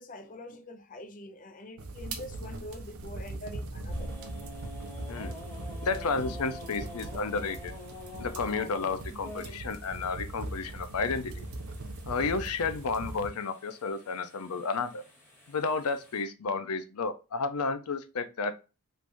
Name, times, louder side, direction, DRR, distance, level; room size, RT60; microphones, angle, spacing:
voice 1, 0.0-4.2, left 1 dB, 35° left, 0.5 m, -45 dB
sound 1, 1.8-13.3, right 2 dB, 80° right, 0.7 m, -40 dB
sound 2, 3.9-16.2, left 1 dB, 10° left, 1.2 m, -48 dB
voice 2, 5.8-7.8 8.2-11.5 12.1-15.0 15.5-18.5, left 4 dB, 90° left, 0.5 m, -32 dB
3.3 x 3.2 x 2.5 m
head